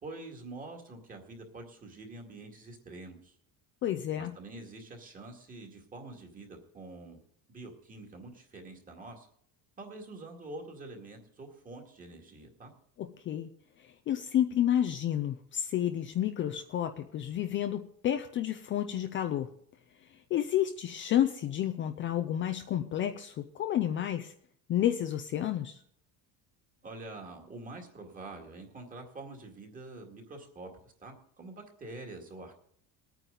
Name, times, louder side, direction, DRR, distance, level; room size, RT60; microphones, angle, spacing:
voice 1, 0.0-3.4 4.1-7.2 7.5-9.3 9.8-12.7 26.8-32.6, right 2 dB, 20° right, 3 dB, 2.1 m, -46 dB
voice 2, 3.8-4.3 13.0-13.5 14.1-19.5 20.3-24.3 24.7-25.8, left 11 dB, 30° left, 7 dB, 0.5 m, -30 dB
21.0 x 9.2 x 3.9 m, 0.65 s
cardioid pair, 175°, 39 cm